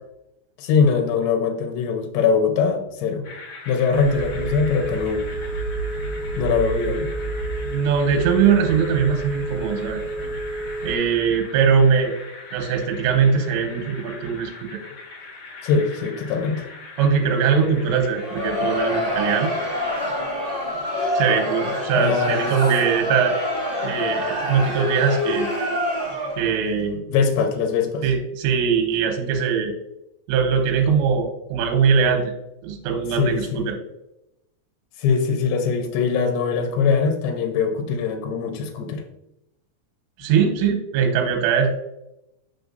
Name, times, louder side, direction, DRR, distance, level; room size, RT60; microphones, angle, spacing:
voice 1, 0.6-3.2 3.7-5.3 6.4-7.1 15.6-16.7 21.9-22.5 27.1-28.1 33.2-33.7 35.0-39.0, left 5 dB, 75° left, 4 dB, 2.6 m, -22 dB
sound 1, 3.2-20.1, left 3 dB, 55° left, 2.0 m, -41 dB
Telephone, 3.9-10.9, right 3 dB, 65° right, 2.0 m, -29 dB
voice 2, 7.6-10.0 10.8-12.1 12.5-14.8 17.0-19.6 21.1-23.4 23.8-25.5 26.4-27.0 28.0-29.7 30.3-32.3 32.6-33.8 40.2-41.8, right 6 dB, 80° right, 2 dB, 3.1 m, -21 dB
Crowd, 18.1-26.6, left 1 dB, 45° right, 0.7 m, -26 dB
6.6 x 6.4 x 2.6 m, 0.85 s
omnidirectional pair, 5.3 m